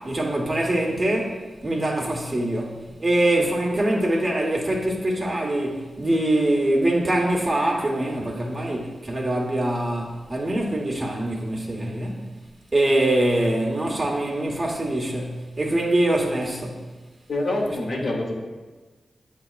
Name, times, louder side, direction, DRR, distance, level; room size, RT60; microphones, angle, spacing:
voice 1, 0.0-12.2 12.7-16.8 17.9-18.0, right 1 dB, 40° right, 1.1 m, -24 dB
voice 2, 17.3-18.4, left 2 dB, 70° left, 0.8 m, -26 dB
7.9 x 2.8 x 2.4 m
cardioid pair, 40°, 0 cm